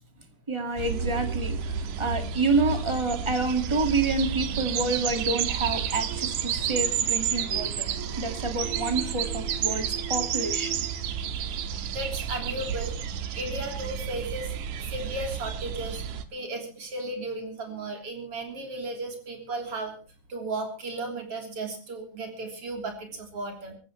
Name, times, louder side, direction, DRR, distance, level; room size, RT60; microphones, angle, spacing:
voice 1, 0.5-7.9 8.2-10.8, right 3 dB, 15° right, 6 dB, 1.3 m, -28 dB
sound 1, 0.8-16.2, right 8 dB, 80° right, 2.5 m, -31 dB
voice 2, 11.2-11.6 11.9-13.0 13.4-14.5 14.8-20.0 20.3-23.7, right 2 dB, 50° right, 3 dB, 4.3 m, -35 dB
25.5 x 15.0 x 3.1 m, 0.34 s
omnidirectional pair, 3.3 m